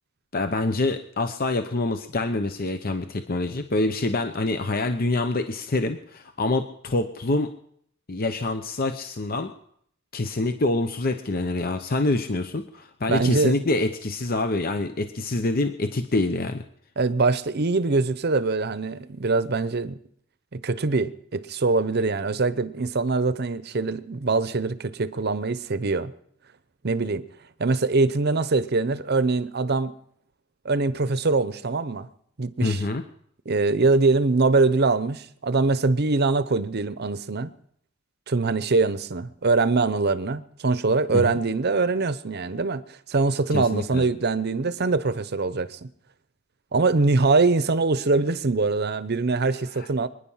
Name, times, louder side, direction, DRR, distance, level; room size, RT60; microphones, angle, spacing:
voice 1, 0.3-7.5 8.1-9.5 10.1-16.6 32.6-33.0 41.1-41.3 43.5-44.0 49.7-50.1, left 2 dB, 45° left, 0.8 m, -26 dB
voice 2, 13.1-13.5 17.0-20.0 20.5-26.1 26.8-27.2 27.6-29.9 30.6-32.1 32.4-32.8 33.5-37.5 38.3-45.9 46.7-50.1, right 3 dB, 50° right, 0.8 m, -23 dB
24.5 x 10.0 x 5.6 m
head